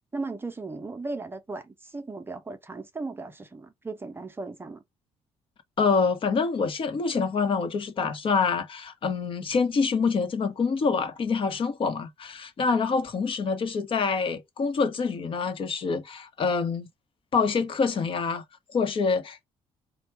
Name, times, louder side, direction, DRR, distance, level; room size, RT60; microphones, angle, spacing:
voice 1, 0.1-4.8, right 3 dB, 20° right, 0.6 m, -36 dB
voice 2, 5.8-16.9 17.3-18.4 18.7-19.4, left 5 dB, 50° left, 1.0 m, -26 dB
3.4 x 2.3 x 4.3 m
cardioid pair, 100°, 11 cm